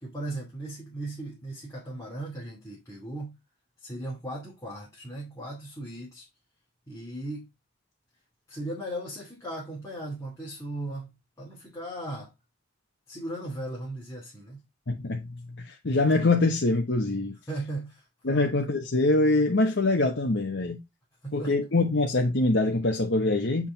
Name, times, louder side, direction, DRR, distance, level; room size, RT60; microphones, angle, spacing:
voice 1, 0.0-3.4 3.8-6.2 6.9-7.5 8.5-12.3 13.1-14.6 17.5-18.5 21.2-21.6, right 1 dB, 15° left, 2.5 m, -37 dB
voice 2, 14.9-17.4 18.2-20.8 21.3-23.7, left 2 dB, 70° left, 1.0 m, -24 dB
7.4 x 4.9 x 3.9 m
head